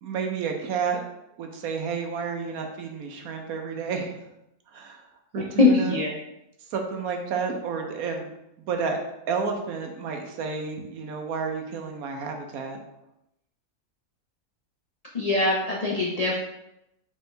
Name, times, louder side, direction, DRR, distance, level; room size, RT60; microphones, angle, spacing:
voice 1, 0.0-1.0 1.4-4.2 4.7-5.0 5.3-6.0 6.7-8.3 8.6-9.0 9.3-12.8, right 5 dB, 70° right, 4 dB, 1.1 m, -30 dB
voice 2, 5.3-6.1 15.1-16.4, left 3 dB, 70° left, -3 dB, 0.3 m, -22 dB
4.4 x 3.5 x 3.2 m, 0.86 s
omnidirectional pair, 1.7 m